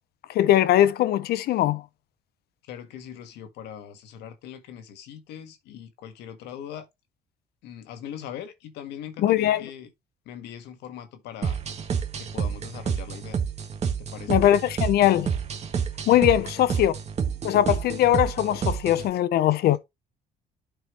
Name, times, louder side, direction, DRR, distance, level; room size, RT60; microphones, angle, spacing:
voice 1, 0.3-1.8 9.2-9.7 14.3-15.3 16.1-16.9 17.4-19.8, left 12 dB, 70° left, 0.8 m, -21 dB
voice 2, 2.6-6.9 7.6-9.9 10.2-11.6 12.2-13.4 14.0-14.4 16.3-16.6, left 9 dB, 85° left, 1.7 m, -41 dB
sound 1, 11.4-19.1, right 7 dB, 40° right, 1.6 m, -29 dB
11.5 x 4.6 x 3.1 m
cardioid pair, 110°, 17 cm